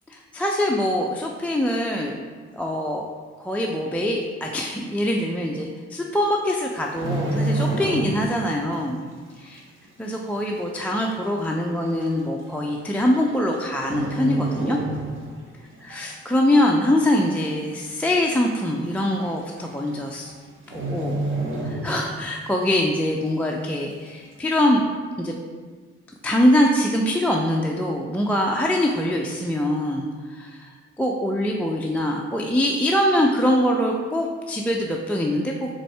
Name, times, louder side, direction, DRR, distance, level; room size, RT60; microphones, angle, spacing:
voice 1, 0.3-2.2 2.5-3.1 3.4-9.0 9.4-9.5 10.0-14.8 15.8-20.3 20.7-21.2 21.6-24.8 25.2-25.4 26.2-35.7, left 1 dB, 5° left, -1 dB, 0.4 m, -23 dB
sound 1, 6.7-8.5 8.7-9.0 9.6-9.7 10.6-10.7 10.9-11.0 11.8-12.0 13.1-13.5 13.8-15.4 15.7-16.0 16.4-17.0 17.3-17.4 17.6-17.7 18.2-18.3 19.2-19.3 19.6-19.9 20.2-20.3 20.7-22.3 22.7-22.8, right 2 dB, 40° right, 1.2 m, -28 dB
4.1 x 3.6 x 3.3 m, 1.5 s
hypercardioid pair, 45°, 31 cm